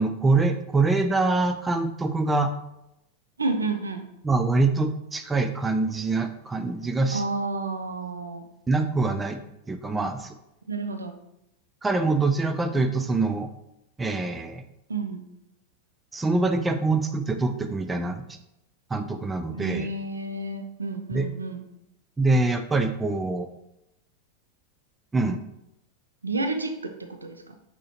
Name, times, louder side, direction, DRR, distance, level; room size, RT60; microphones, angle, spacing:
voice 1, 0.0-2.5 4.2-7.2 8.7-9.4 9.7-10.3 11.8-13.5 14.0-14.6 16.1-18.2 18.9-19.9 21.1-21.3 22.2-23.5 25.1-25.4, right 3 dB, 10° right, 7 dB, 0.3 m, -24 dB
voice 2, 3.4-4.0 7.1-8.5 10.7-11.1 14.9-15.2 19.5-21.6 26.2-27.6, right 3 dB, 75° right, 5 dB, 0.5 m, -30 dB
6.0 x 2.8 x 2.8 m, 0.85 s
figure-of-eight pair, 90°, 0 cm